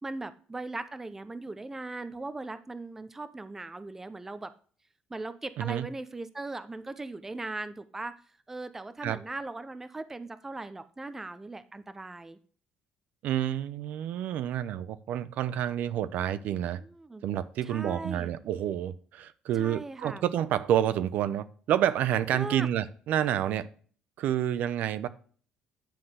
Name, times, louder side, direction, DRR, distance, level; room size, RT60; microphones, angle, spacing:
voice 1, 0.0-4.5 5.1-8.1 8.5-12.4 16.8-17.2 17.7-18.3 19.5-20.2 22.3-22.7, right 2 dB, 15° right, 12 dB, 0.6 m, -39 dB
voice 2, 13.2-16.8 17.2-23.7 24.2-25.1, right 11 dB, 70° right, 14 dB, 0.7 m, -29 dB
10.5 x 3.8 x 6.5 m, 0.44 s
cardioid pair, 130°, 3 cm